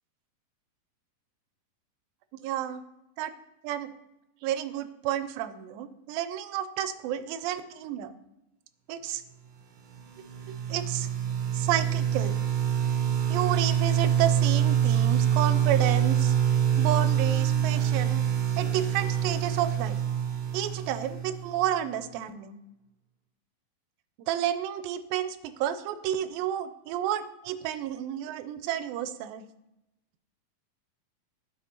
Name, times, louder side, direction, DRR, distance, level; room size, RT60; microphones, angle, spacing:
voice 1, 2.4-2.8 3.2-3.3 3.6-3.9 4.4-8.1 8.9-9.2 10.5-11.1 11.5-12.4 13.3-16.3 16.8-18.3 18.6-20.0 20.5-22.6 24.3-29.4, right 11 dB, 90° right, 12 dB, 2.3 m, -31 dB
sound 1, 9.9-21.7, right 9 dB, 70° right, 2.2 m, -26 dB
12.0 x 5.9 x 2.8 m, 0.90 s
omnidirectional pair, 4.0 m